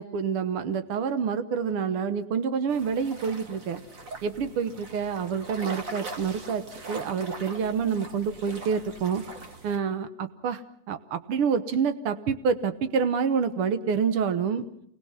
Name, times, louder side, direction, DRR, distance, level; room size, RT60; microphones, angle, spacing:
voice 1, 0.0-3.8 4.2-9.2 9.6-10.6 10.9-14.6, right 6 dB, 80° right, 11 dB, 1.2 m, -27 dB
sound 1, 2.7-9.8, right 3 dB, 50° right, 0.9 m, -42 dB
28.5 x 20.5 x 5.7 m, 0.67 s
omnidirectional pair, 4.2 m